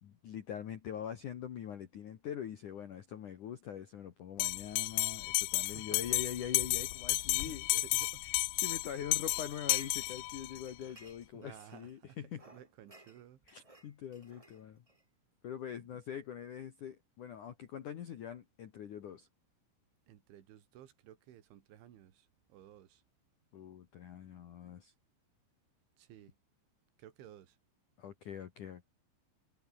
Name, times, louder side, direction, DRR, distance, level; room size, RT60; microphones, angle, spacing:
voice 1, 0.0-7.7 8.6-12.4 13.5-14.8 15.4-19.3 23.5-24.9 28.0-28.9, left 9 dB, 55° left, 2.4 m, -43 dB
Bell, 4.4-10.6, left 22 dB, 90° left, 2.3 m, -33 dB
voice 2, 5.6-6.2 7.4-8.3 9.0-9.1 10.8-11.0 11.3-12.2 12.5-13.4 15.8-16.0 20.1-23.0 26.0-26.4 27.0-27.6, right 11 dB, 80° right, 4.7 m, -55 dB
sound 1, 9.3-10.4 10.7-12.0 12.3-15.0, right 2 dB, 15° right, 1.3 m, -55 dB
omnidirectional pair, 5.4 m